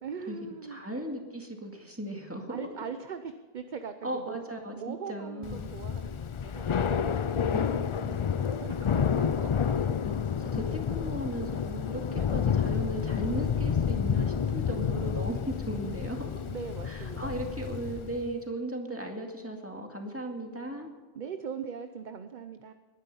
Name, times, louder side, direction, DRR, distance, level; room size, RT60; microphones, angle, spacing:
voice 1, 0.0-0.8 2.5-4.4 4.8-7.6 8.1-8.9 9.2-9.7 12.1-12.3 14.7-14.8 16.5-17.4 21.1-22.7, right 6 dB, 50° right, 9 dB, 0.8 m, -41 dB
voice 2, 0.7-2.7 4.0-5.7 7.5-8.3 10.0-16.3 16.8-20.9, right 1 dB, 15° right, 2 dB, 2.1 m, -37 dB
Thunder / Rain, 5.4-18.3, left 7 dB, 50° left, 0.3 m, -30 dB
20.0 x 10.5 x 5.5 m, 1.4 s
omnidirectional pair, 1.1 m